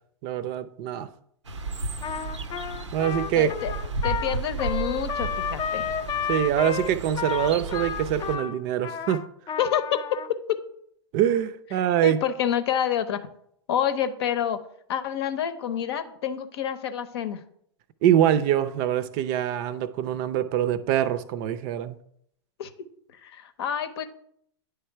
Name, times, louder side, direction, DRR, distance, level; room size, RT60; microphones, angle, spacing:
voice 1, 0.2-1.1 2.9-3.5 6.3-9.2 11.1-12.2 18.0-22.0, right 10 dB, 45° right, 0.5 m, -24 dB
sound 1, 1.5-8.4, right 3 dB, 90° right, 0.7 m, -34 dB
Trumpet, 2.0-10.3, left 7 dB, 30° left, 0.5 m, -32 dB
voice 2, 3.4-3.7 4.0-5.9 9.6-10.6 12.0-13.2 13.7-14.6 14.9-17.4 22.6-22.7 23.1-24.0, left 9 dB, 65° left, 0.8 m, -28 dB
9.6 x 3.4 x 4.6 m
hypercardioid pair, 100°, 15 cm